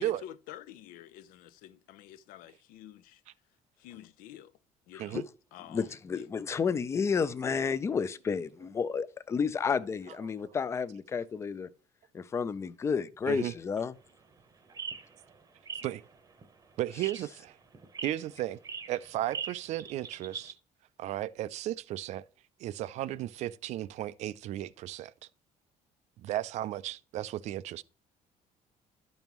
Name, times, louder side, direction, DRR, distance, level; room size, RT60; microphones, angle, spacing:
voice 1, 0.0-3.2 3.8-4.5 4.9-6.3, left 12 dB, 85° left, 0.5 m, -49 dB
voice 2, 5.7-11.7 12.1-13.9, left 6 dB, 20° left, 0.3 m, -31 dB
sound 1, 14.0-20.5, right 6 dB, 25° right, 0.8 m, -43 dB
voice 3, 16.8-17.6 18.0-18.6 18.9-20.6 21.0-22.2 22.6-25.1 26.2-27.8, right 14 dB, 55° right, 0.4 m, -35 dB
12.0 x 5.4 x 3.0 m
cardioid pair, 165°, 14 cm